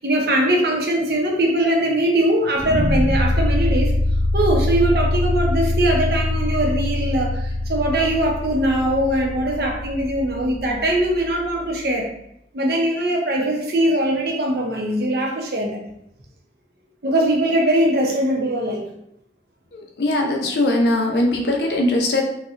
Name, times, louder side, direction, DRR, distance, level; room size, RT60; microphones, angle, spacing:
voice 1, 0.0-3.9 4.3-12.1 12.5-15.8 17.0-18.8, right 1 dB, 60° right, 0 dB, 0.7 m, -21 dB
sound 1, 2.6-11.6, left 1 dB, ahead, 0.8 m, -23 dB
voice 2, 19.7-22.2, left 1 dB, 70° left, 1 dB, 0.6 m, -20 dB
4.1 x 2.2 x 2.5 m, 0.75 s
head